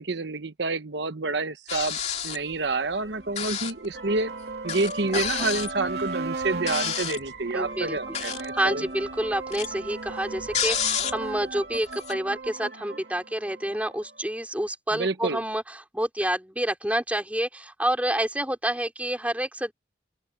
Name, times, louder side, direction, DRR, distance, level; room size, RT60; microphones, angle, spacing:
voice 1, 0.0-2.0 2.2-4.3 4.6-8.8 14.9-15.4, right 3 dB, 75° right, 1.1 m, -28 dB
sound 1, 1.7-2.5 3.4-3.9 4.2-4.3 4.7-7.3 8.0-8.6 8.9-11.4 11.7-12.1, left 8 dB, 35° left, 2.6 m, -30 dB
sound 2, 2.4-14.2, right 3 dB, 60° right, 3.1 m, -37 dB
voice 2, 7.5-19.7, right 1 dB, 10° right, 4.1 m, -28 dB
open air
head